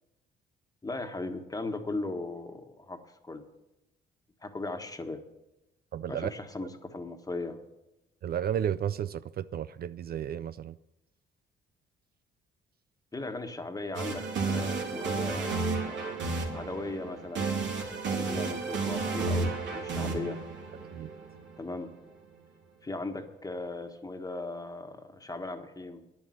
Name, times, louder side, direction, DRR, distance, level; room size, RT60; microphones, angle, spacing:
voice 1, 0.8-3.4 4.4-5.2 6.1-7.6 13.1-16.1 16.5-17.5 18.1-20.4 21.6-21.9 22.8-26.0, left 2 dB, 20° left, 1.4 m, -38 dB
voice 2, 5.9-6.3 8.2-10.8 20.9-21.1, right 9 dB, 50° right, 0.4 m, -32 dB
sound 1, 13.9-21.9, right 4 dB, 70° right, 2.9 m, -32 dB
10.5 x 9.5 x 7.9 m
cardioid pair, 90°, 20 cm